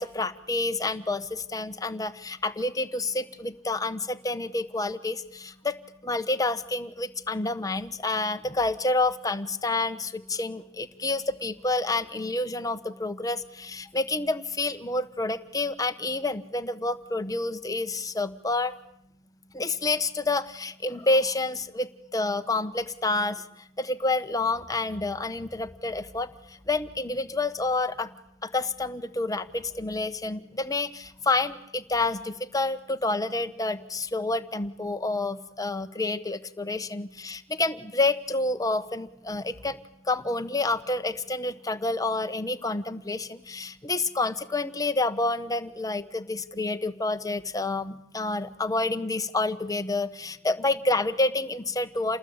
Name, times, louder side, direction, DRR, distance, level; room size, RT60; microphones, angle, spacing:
voice 1, 0.0-18.8 19.5-23.4 23.8-28.1 28.4-39.8 40.1-52.2, left 2 dB, 20° left, 9 dB, 1.2 m, -28 dB
28.5 x 20.0 x 8.8 m, 0.79 s
head